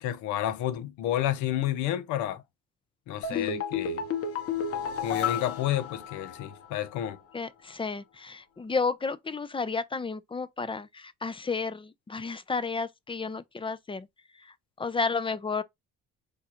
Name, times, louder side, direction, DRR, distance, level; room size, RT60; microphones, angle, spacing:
voice 1, 0.0-2.4 3.1-4.0 5.0-7.2, left 12 dB, 80° left, 0.6 m, -30 dB
sound 1, 3.2-6.7 6.9-7.0, left 7 dB, 50° left, 0.9 m, -32 dB
voice 2, 3.3-3.6 7.3-14.1 14.4-15.6, left 4 dB, 20° left, 0.5 m, -32 dB
4.9 x 2.3 x 2.9 m
supercardioid pair, 65°, 29 cm